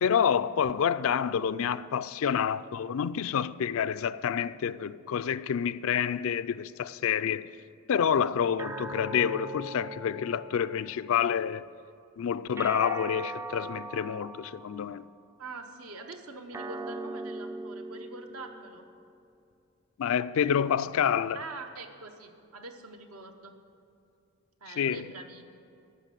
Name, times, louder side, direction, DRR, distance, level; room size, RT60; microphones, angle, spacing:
voice 1, 0.0-7.5 7.9-11.7 12.2-15.1 20.0-21.4 24.8-25.0, left 8 dB, 65° left, 0.4 m, -28 dB
sound 1, 8.6-11.2 12.6-15.1 16.5-19.1, right 2 dB, 10° right, 0.3 m, -40 dB
voice 2, 15.4-18.8 21.3-23.5 24.6-25.4, right 3 dB, 80° right, 1.2 m, -44 dB
14.0 x 5.8 x 9.0 m
head